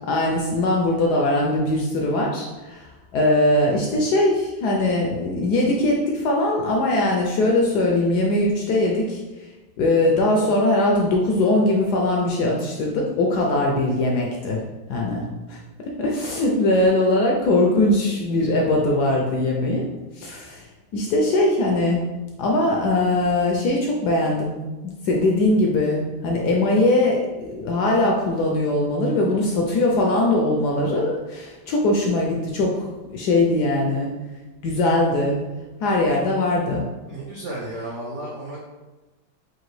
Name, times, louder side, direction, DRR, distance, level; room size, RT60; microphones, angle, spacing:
voice 1, 0.1-9.2 9.8-14.6 14.9-15.6 16.0-19.8 20.1-22.1 22.4-34.1 34.6-35.4 35.8-36.8, left 2 dB, 75° left, -1 dB, 0.9 m, -21 dB
voice 2, 29.1-29.4 37.0-38.6, right 1 dB, 80° right, -4 dB, 0.6 m, -33 dB
4.8 x 2.5 x 3.1 m, 1.1 s
omnidirectional pair, 2.1 m